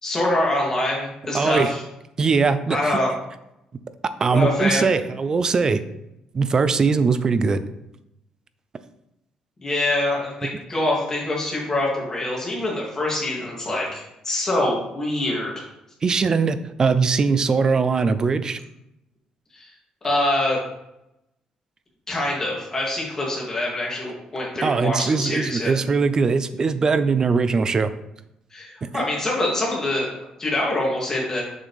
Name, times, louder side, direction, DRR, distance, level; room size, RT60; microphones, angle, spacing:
voice 1, 0.0-1.8 2.7-3.1 4.3-4.9 9.6-15.6 19.5-19.7 20.0-20.6 22.1-25.7 28.5-31.4, left 1 dB, 25° left, -4 dB, 2.7 m, -25 dB
voice 2, 1.3-1.7 2.2-3.0 4.2-5.8 6.3-7.6 16.0-18.6 24.6-27.9 28.8-28.9, right 5 dB, 30° right, 12 dB, 0.5 m, -21 dB
7.3 x 5.9 x 3.5 m, 0.85 s
cardioid pair, 125°, 2 cm